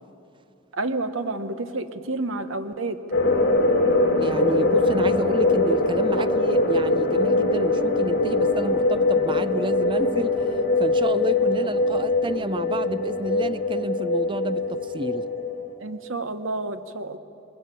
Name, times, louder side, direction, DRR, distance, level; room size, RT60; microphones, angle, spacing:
voice 1, 0.8-3.0 6.1-6.2 15.8-17.2, right 2 dB, 85° right, 10 dB, 1.1 m, -29 dB
sound 1, 3.1-15.7, left 2 dB, 60° left, 2.4 m, -22 dB
voice 2, 4.2-10.4 10.8-15.3, right 2 dB, 25° right, 14 dB, 0.6 m, -30 dB
21.0 x 20.0 x 9.1 m, 2.9 s
head